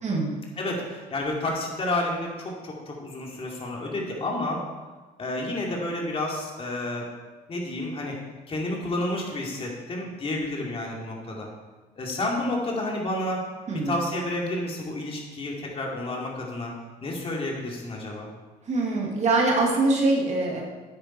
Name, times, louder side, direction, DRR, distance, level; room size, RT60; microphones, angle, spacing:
voice 1, 0.0-0.4 13.7-14.0 18.7-20.6, right 2 dB, 45° right, -2 dB, 2.4 m, -23 dB
voice 2, 0.6-4.6 5.2-7.1 7.5-8.2 8.5-11.5 12.0-13.4 13.9-16.7 17.0-18.3, left 1 dB, 35° left, -1 dB, 2.7 m, -30 dB
9.2 x 9.1 x 4.5 m, 1.3 s
cardioid pair, 110°, 17 cm